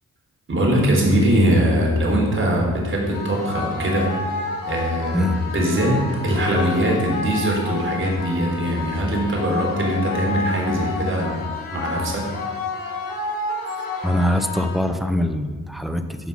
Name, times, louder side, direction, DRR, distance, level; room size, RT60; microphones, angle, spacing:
voice 1, 0.5-4.4 4.7-5.3 5.5-11.4 11.7-12.3, right 1 dB, 35° right, -1 dB, 3.9 m, -21 dB
sound 1, 3.1-15.1, left 3 dB, 80° left, 3.7 m, -30 dB
voice 2, 14.0-16.3, left 1 dB, ahead, 8 dB, 0.9 m, -23 dB
15.0 x 5.8 x 6.0 m, 1.4 s
cardioid pair, 80°, 33 cm